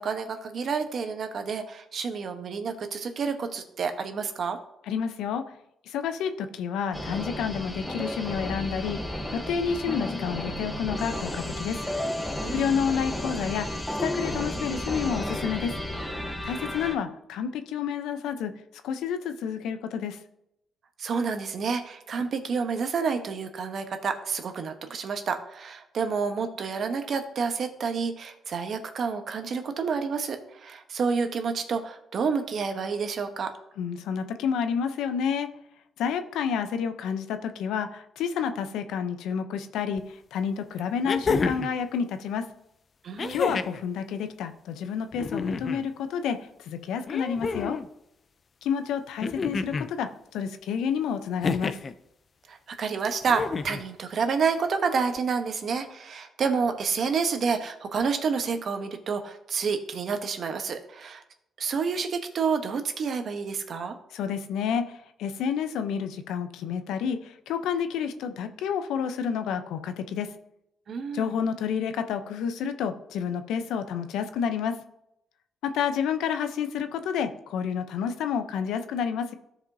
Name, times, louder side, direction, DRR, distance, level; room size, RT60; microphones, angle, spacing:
voice 1, 0.0-4.6 12.4-12.7 21.0-33.5 43.0-43.5 52.5-61.2 61.6-63.9 70.9-71.3, right 5 dB, 55° right, 7 dB, 1.0 m, -29 dB
voice 2, 4.9-5.4 5.9-9.0 9.3-11.8 12.5-13.7 14.0-15.7 16.4-18.5 18.8-20.2 33.8-35.5 36.0-40.0 40.3-42.4 43.3-46.4 46.7-47.8 48.6-50.1 50.3-51.8 64.1-70.3 71.1-74.7 75.6-79.3, left 7 dB, 85° left, 9 dB, 0.6 m, -29 dB
sound 1, 6.9-16.9, left 1 dB, 10° left, 1.0 m, -32 dB
sound 2, 40.0-40.1 41.0-41.8 43.2-43.8 45.1-45.8 47.1-47.9 49.2-49.9 51.4-51.9 53.3-53.9 55.2-55.3, left 4 dB, 40° left, 0.5 m, -29 dB
13.5 x 5.0 x 2.7 m, 0.81 s
cardioid pair, 90°, 0 cm